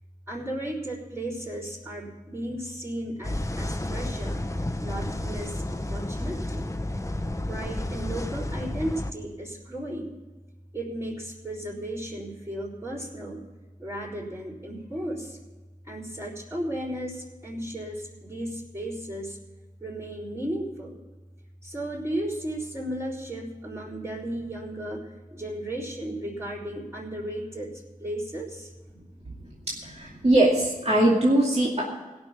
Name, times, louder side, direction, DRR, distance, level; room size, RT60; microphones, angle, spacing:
voice 1, 0.3-4.4 4.8-6.7 7.5-10.2 10.7-13.4 13.8-15.4 15.9-19.4 19.8-21.0 21.6-29.7 30.1-30.3, right 1 dB, 20° right, -9 dB, 4.4 m, -35 dB
sound 1, 3.2-9.1, left 1 dB, 20° left, 0.9 m, -31 dB
voice 2, 29.7-31.8, right 1 dB, 50° right, -4 dB, 2.3 m, -21 dB
17.0 x 6.2 x 8.4 m, 1.3 s
cardioid pair, 40°, 14 cm